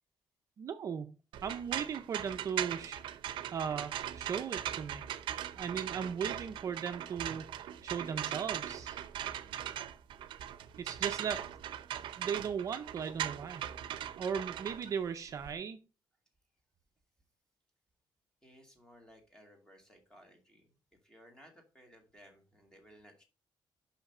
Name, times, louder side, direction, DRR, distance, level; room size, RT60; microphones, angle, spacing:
voice 1, 0.6-3.0 3.5-5.0 5.6-9.0 10.8-11.4 12.2-13.6 14.2-15.8, right 7 dB, 40° right, 7 dB, 0.6 m, -37 dB
sound 1, 1.3-15.5, right 11 dB, 80° right, 0.6 m, -40 dB
voice 2, 9.3-9.7 11.3-11.5 11.9-12.3 18.4-20.8 21.0-23.2, equal, 10° left, 3 dB, 2.0 m, -59 dB
5.8 x 5.7 x 6.5 m, 0.33 s
cardioid pair, 180°, 8 cm